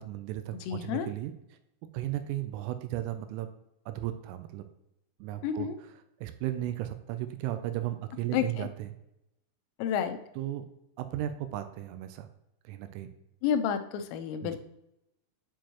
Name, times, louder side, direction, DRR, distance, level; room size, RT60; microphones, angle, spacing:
voice 1, 0.0-1.3 1.9-3.5 3.9-4.7 5.2-5.7 6.2-8.9 10.4-10.7 11.0-12.3 12.6-13.1 14.4-14.6, right 13 dB, 85° right, 9 dB, 3.1 m, -35 dB
voice 2, 0.7-1.1 5.4-5.8 8.3-8.7 9.8-10.2 13.4-14.6, left 8 dB, 90° left, 7 dB, 3.3 m, -30 dB
9.2 x 4.6 x 3.0 m, 0.86 s
omnidirectional pair, 5.9 m